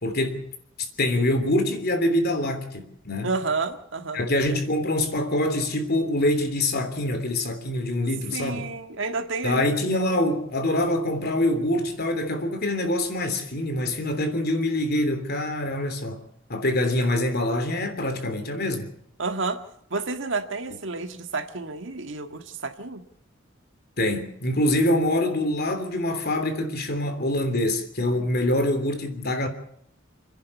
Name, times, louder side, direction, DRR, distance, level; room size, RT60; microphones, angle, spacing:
voice 1, 0.0-0.5 0.8-3.3 4.1-8.7 9.4-16.2 16.5-18.9 24.0-29.5, left 1 dB, 55° left, 3.2 m, -25 dB
voice 2, 3.2-4.6 8.3-9.7 19.2-19.6 19.9-23.0, right 3 dB, 70° right, 1.9 m, -30 dB
29.5 x 10.5 x 8.4 m
head